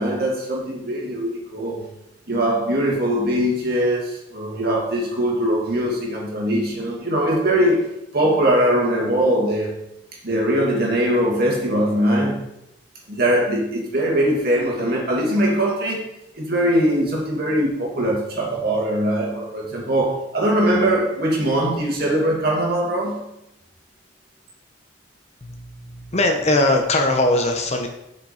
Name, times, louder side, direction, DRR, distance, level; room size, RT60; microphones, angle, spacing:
voice 1, 0.0-1.8 2.3-9.8 10.2-12.4 13.1-16.1 16.4-23.2, right 1 dB, 55° right, 2.1 m, -21 dB
voice 2, 25.4-27.9, left 2 dB, 35° left, 0.9 m, -20 dB
6.2 x 5.9 x 4.3 m
head